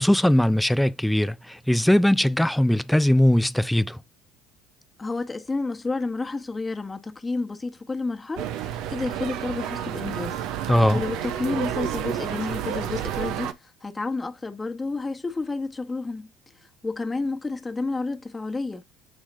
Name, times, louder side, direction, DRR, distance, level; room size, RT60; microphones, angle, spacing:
voice 1, 0.0-4.0 10.7-11.0, left 1 dB, 5° left, 0.5 m, -20 dB
voice 2, 5.0-10.4 10.9-16.3 16.8-18.8, left 3 dB, 20° left, 1.1 m, -30 dB
sound 1, 8.4-13.5, right 10 dB, 65° right, 0.8 m, -30 dB
9.5 x 4.2 x 2.7 m
hypercardioid pair, 70°, 0 cm